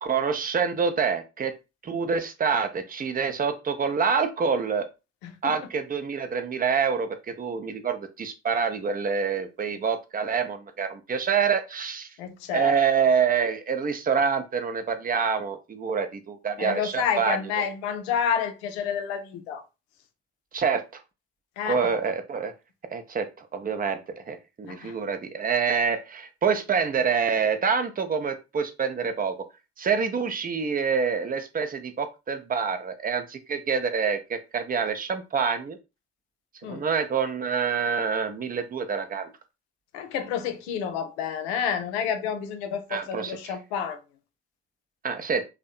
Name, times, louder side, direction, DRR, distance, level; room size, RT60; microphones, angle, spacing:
voice 1, 0.0-1.5 1.8-4.9 5.4-12.1 12.5-17.4 20.5-20.8 21.6-22.5 22.9-29.4 29.8-35.8 36.6-39.3 42.9-43.4 45.0-45.5, right 6 dB, 30° right, 0.5 m, -26 dB
voice 2, 5.2-5.7 12.2-12.8 16.6-19.6 21.6-21.9 24.7-25.0 36.6-36.8 39.9-44.0, left 7 dB, 85° left, 0.5 m, -29 dB
2.6 x 2.1 x 2.3 m
hypercardioid pair, 45°, 32 cm